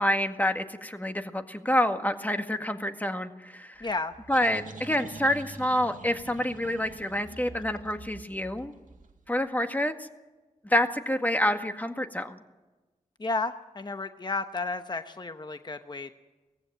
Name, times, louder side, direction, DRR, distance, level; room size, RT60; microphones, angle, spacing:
voice 1, 0.0-3.9 4.3-8.7 9.3-10.1 10.6-12.4, left 1 dB, 10° left, 6 dB, 1.8 m, -28 dB
voice 2, 3.8-4.1 13.2-16.2, left 3 dB, 35° left, 9 dB, 1.0 m, -32 dB
sound 1, 3.8-9.3, right 3 dB, 80° right, 2.0 m, -46 dB
19.0 x 15.5 x 9.1 m, 1.2 s
cardioid pair, 55°, 13 cm